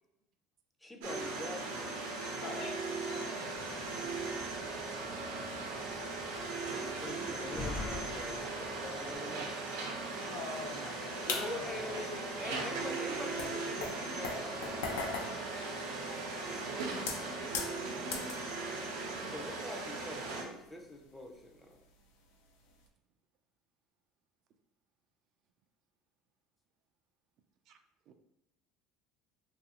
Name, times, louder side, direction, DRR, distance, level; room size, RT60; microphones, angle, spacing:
voice 1, 0.8-2.2 7.0-9.5 11.3-14.8 19.3-21.8, left 1 dB, 5° left, 2 dB, 0.5 m, -44 dB
sound 1, 1.0-20.4, right 3 dB, 90° right, 0.6 m, -38 dB
voice 2, 2.2-2.7 3.1-3.7 6.7-6.9 10.0-12.0 12.3-12.6 16.1-16.4, left 3 dB, 65° left, -1 dB, 0.9 m, -46 dB
Slam, 3.5-9.2, left 3 dB, 35° left, 0.8 m, -47 dB
voice 3, 9.3-9.6 15.8-16.4 27.7-27.8 28.1-28.2, right 6 dB, 55° right, 7 dB, 0.3 m, -54 dB
sound 2, 11.3-11.9 12.8-12.9 13.4-16.4 16.9-18.5 18.9-19.2 19.6-19.7 20.7-21.4 21.7-21.9 22.7-22.8, left 4 dB, 90° left, 0.4 m, -39 dB
2.6 x 2.4 x 2.8 m, 0.90 s
supercardioid pair, 105°, 0 cm